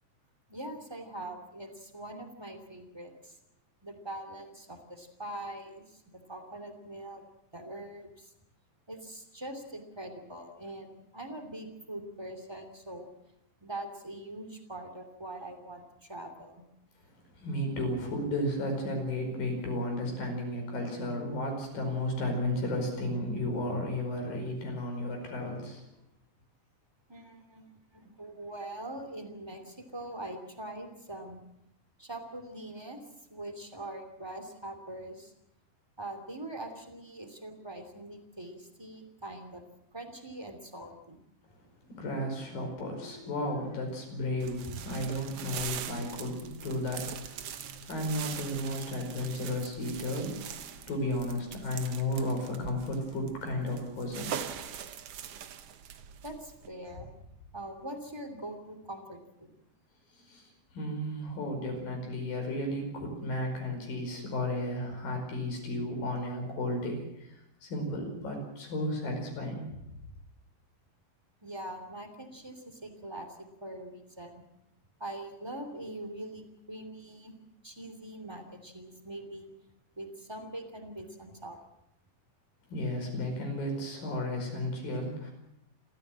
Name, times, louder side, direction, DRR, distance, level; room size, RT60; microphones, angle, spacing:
voice 1, 0.5-3.4 3.8-7.2 7.5-8.3 8.9-13.1 13.6-16.7 27.1-31.4 32.0-33.0 33.3-35.3 36.0-39.6 39.9-41.2 47.4-47.9 56.2-57.1 57.5-59.5 71.4-74.4 75.0-77.4 77.6-79.5 80.0-81.6, right 1 dB, 10° right, 7 dB, 2.3 m, -43 dB
voice 2, 17.4-25.8 41.8-54.4 60.2-60.5 60.7-69.7 82.7-85.3, left 1 dB, 70° left, 3 dB, 6.8 m, -33 dB
sound 1, 44.4-56.7, right 9 dB, 70° right, 1.4 m, -42 dB
29.0 x 14.0 x 7.7 m, 0.84 s
omnidirectional pair, 4.2 m